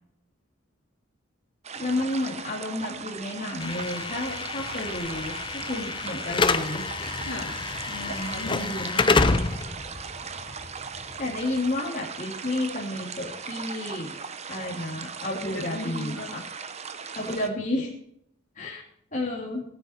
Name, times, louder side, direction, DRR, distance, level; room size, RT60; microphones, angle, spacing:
sound 1, 1.6-17.5, right 5 dB, 35° right, 0.9 m, -38 dB
voice 1, 1.7-6.8 8.3-9.3 11.2-14.2 14.5-16.4 17.1-17.9 18.6-18.8 19.1-19.6, left 1 dB, 40° left, -4 dB, 2.6 m, -31 dB
Slam / Alarm, 3.6-11.7, left 3 dB, 25° left, 0.6 m, -28 dB
voice 2, 7.2-8.7 15.3-16.4, left 2 dB, 75° left, -3 dB, 4.1 m, -37 dB
18.0 x 8.9 x 4.4 m, 0.71 s
head